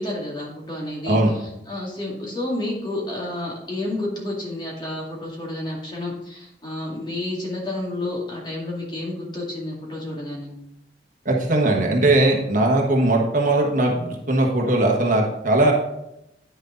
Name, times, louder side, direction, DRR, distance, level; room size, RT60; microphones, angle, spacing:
voice 1, 0.0-10.5, left 1 dB, 25° left, -3 dB, 2.2 m, -30 dB
voice 2, 11.2-15.7, right 2 dB, 45° right, 0 dB, 1.4 m, -19 dB
9.4 x 6.4 x 3.9 m, 0.84 s
head